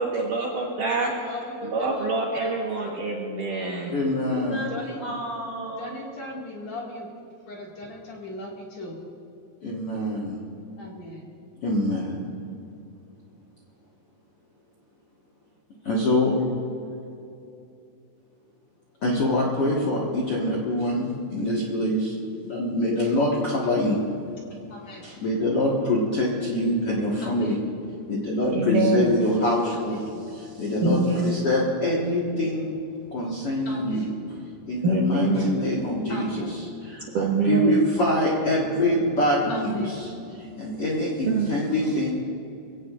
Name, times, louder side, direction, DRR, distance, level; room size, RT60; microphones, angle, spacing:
voice 1, 0.0-1.1 1.6-4.0 28.5-29.1 30.8-31.4 34.8-35.5 37.1-37.8 41.3-41.5, right 3 dB, 70° right, -2 dB, 2.1 m, -25 dB
voice 2, 1.0-2.1 2.4-2.7 4.7-5.0 5.8-7.1 7.5-9.0 10.8-11.2 24.7-25.0 27.2-27.5 29.7-29.8 33.7-34.0 36.1-36.5 39.5-40.0 40.3-40.4, left 1 dB, 45° left, -3 dB, 2.7 m, -38 dB
voice 3, 3.9-6.0 9.6-10.4 11.6-12.3 15.8-16.4 19.0-24.1 25.0-27.7 28.1-32.7 33.1-34.4 34.7-42.1, left 1 dB, 80° left, -4 dB, 1.3 m, -25 dB
23.5 x 17.0 x 2.5 m, 2.7 s
omnidirectional pair, 5.4 m